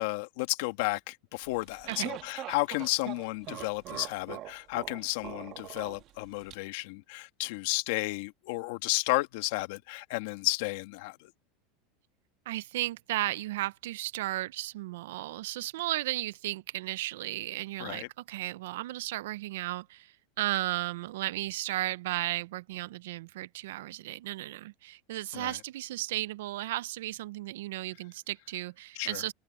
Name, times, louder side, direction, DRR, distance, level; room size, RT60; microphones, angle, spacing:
voice 1, 0.0-11.3 17.8-18.1 25.3-25.6 29.0-29.2, left 22 dB, 70° left, 2.0 m, -32 dB
sound 1, 1.5-6.5, right 14 dB, 45° right, 1.6 m, -42 dB
voice 2, 12.5-29.3, right 16 dB, 80° right, 0.5 m, -34 dB
open air
supercardioid pair, 125°, 0 cm